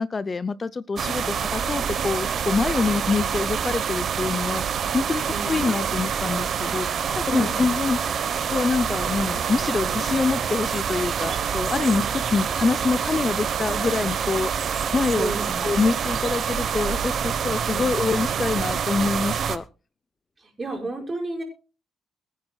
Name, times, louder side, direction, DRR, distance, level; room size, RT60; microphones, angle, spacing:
voice 1, 0.0-14.5 14.9-15.3 15.6-19.6, left 4 dB, 30° left, 15 dB, 0.5 m, -26 dB
sound 1, 1.0-19.6, right 7 dB, 60° right, 1.1 m, -26 dB
sound 2, 5.3-5.9 6.6-9.4 9.9-15.4, equal, 10° left, 5.7 m, -46 dB
voice 2, 5.3-5.6 7.3-7.6 15.1-15.6 20.4-21.4, right 2 dB, 25° right, 0 dB, 5.6 m, -31 dB
23.5 x 9.7 x 2.3 m, 0.34 s
cardioid pair, 90°, 0 cm